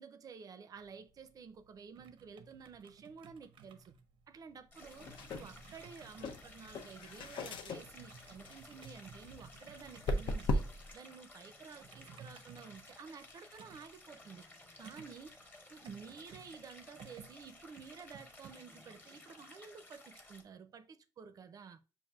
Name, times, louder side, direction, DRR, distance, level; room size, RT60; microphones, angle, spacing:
voice 1, 0.0-3.9 4.3-10.6 10.9-14.5 14.8-15.3 15.7-21.8, right 6 dB, 45° right, 0.5 m, -52 dB
sound 1, 0.8-18.5, right 5 dB, 85° right, 0.6 m, -58 dB
Stream, 4.7-20.4, left 2 dB, 25° left, 1.0 m, -57 dB
sound 2, 4.8-10.9, left 1 dB, 70° left, 0.5 m, -39 dB
7.1 x 2.5 x 2.3 m
cardioid pair, 145°, 9 cm